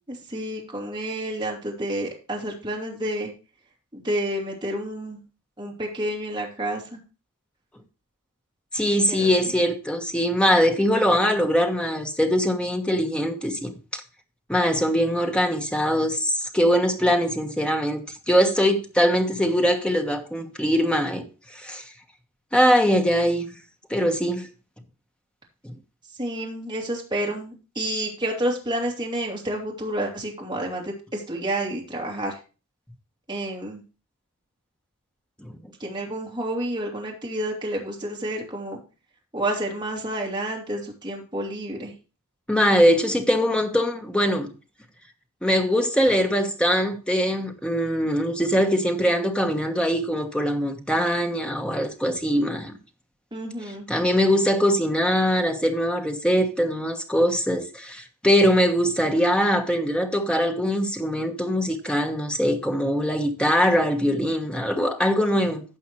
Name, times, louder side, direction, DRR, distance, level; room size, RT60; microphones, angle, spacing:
voice 1, 0.1-3.3 3.9-5.2 5.6-7.0 9.1-9.3 26.2-32.4 33.3-33.8 35.8-38.8 39.3-41.9 53.3-53.9, right 1 dB, 20° right, 2.6 m, -29 dB
voice 2, 8.7-14.0 14.5-21.2 21.5-21.8 22.5-23.5 23.9-24.5 25.6-25.7 35.4-35.5 42.5-44.5 45.4-52.7 53.9-65.6, equal, 5° left, 1.2 m, -22 dB
15.5 x 5.6 x 3.1 m
head